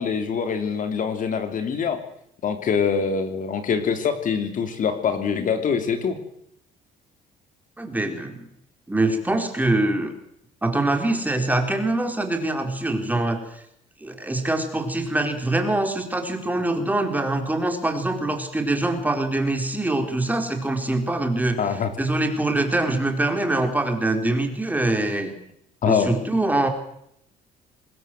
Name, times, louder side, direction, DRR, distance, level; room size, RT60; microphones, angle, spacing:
voice 1, 0.0-2.0 2.4-6.2 21.6-21.9 25.8-26.1, left 6 dB, 50° left, 8 dB, 3.2 m, -24 dB
voice 2, 7.8-8.4 8.9-10.1 10.6-13.6 14.0-21.6 22.0-25.3 25.8-26.7, right 2 dB, 10° right, 5 dB, 4.3 m, -24 dB
25.0 x 20.5 x 7.7 m, 0.74 s
cardioid pair, 110°, 17 cm